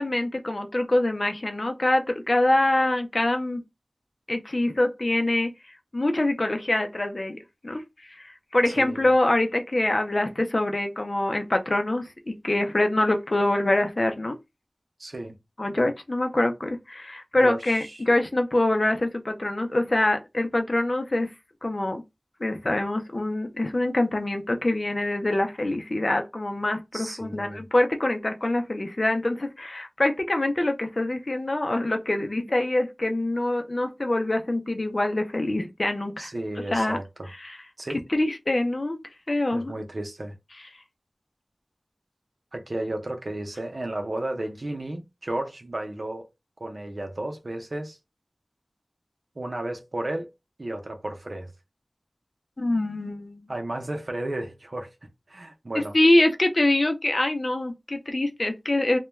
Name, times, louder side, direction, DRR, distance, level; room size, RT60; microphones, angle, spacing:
voice 1, 0.0-3.6 4.3-5.5 5.9-7.8 8.1-14.4 15.6-21.3 21.6-22.0 22.4-36.3 36.7-37.0 37.4-37.6 38.1-39.0 39.3-39.7 52.6-53.5 55.7-59.0, left 1 dB, 55° left, 0.5 m, -25 dB
voice 2, 8.7-9.1 15.0-15.4 17.4-18.0 26.9-27.6 36.2-37.3 37.8-38.0 39.5-40.4 42.5-46.3 46.6-48.0 49.4-50.3 50.6-51.5 53.5-54.9 55.3-55.9, right 1 dB, 70° right, 0.6 m, -33 dB
2.2 x 2.2 x 3.0 m
wide cardioid pair, 45°, 0 cm